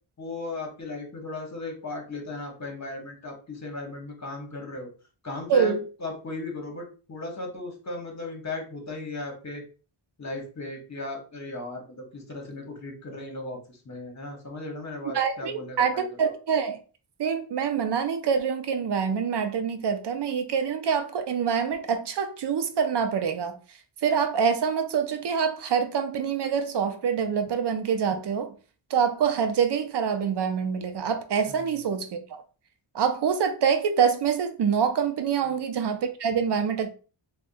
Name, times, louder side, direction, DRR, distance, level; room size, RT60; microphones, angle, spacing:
voice 1, 0.2-4.9 5.2-5.7 6.0-9.6 10.2-16.1 31.5-31.6 35.4-35.6, left 2 dB, 35° left, 1.0 m, -36 dB
voice 2, 5.5-5.8 15.1-16.8 17.2-23.6 24.0-28.6 28.9-32.4 32.9-36.9, right 7 dB, 55° right, 0.6 m, -25 dB
3.4 x 2.3 x 2.5 m
wide cardioid pair, 100°, 49 cm